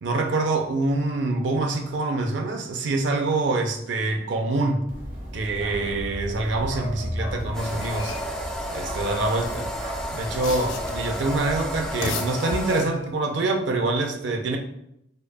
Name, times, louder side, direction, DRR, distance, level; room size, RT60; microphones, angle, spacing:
voice 1, 0.0-4.9 5.3-8.1 8.7-9.7 10.1-14.6, right 2 dB, 65° right, 5 dB, 0.5 m, -25 dB
Bark, 4.9-11.9, equal, 45° right, 1.0 m, -35 dB
sound 1, 7.4-8.4 9.3-11.1 11.8-13.1, left 3 dB, 85° left, 0.5 m, -36 dB
sound 2, 7.5-12.9, equal, 5° left, 0.3 m, -32 dB
5.1 x 2.2 x 2.2 m, 0.78 s
head